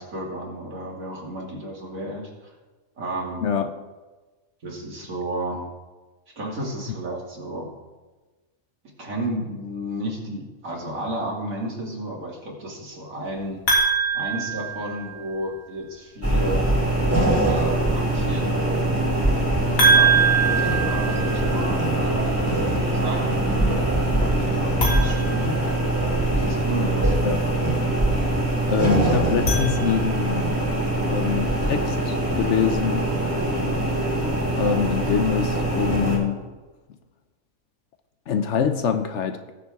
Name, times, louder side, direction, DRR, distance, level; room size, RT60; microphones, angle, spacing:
voice 1, 0.0-2.3 3.0-3.4 4.6-5.6 6.4-7.7 9.0-13.6 14.1-16.7 17.4-18.9 19.8-22.3 22.9-23.9 24.1-25.6 26.3-27.2 33.2-33.3, right 1 dB, 70° right, -2 dB, 2.9 m, -32 dB
sound 1, 13.7-15.4 19.8-21.8 24.7-26.3 29.2-30.4, right 4 dB, 80° left, 2.9 m, -23 dB
sound 2, 16.2-36.2, right 1 dB, 10° right, 2.7 m, -23 dB
voice 2, 28.7-30.6 31.1-33.1 34.6-36.4 38.3-39.5, left 7 dB, 65° left, 9 dB, 0.9 m, -24 dB
19.5 x 7.2 x 3.6 m, 1.2 s
omnidirectional pair, 1.5 m